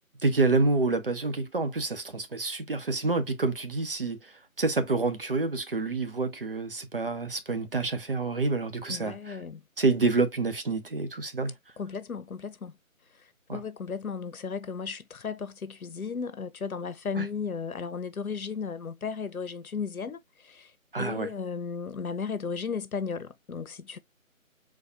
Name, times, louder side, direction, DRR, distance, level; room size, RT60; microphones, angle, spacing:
voice 1, 0.2-9.4 9.8-11.5 13.5-13.6 17.2-17.3 20.9-21.3, right 3 dB, 40° right, 0.8 m, -28 dB
voice 2, 8.9-9.6 11.8-12.8 13.1-20.7 21.0-24.0, left 5 dB, 80° left, 0.9 m, -35 dB
4.3 x 2.3 x 4.2 m
figure-of-eight pair, 165°, 42 cm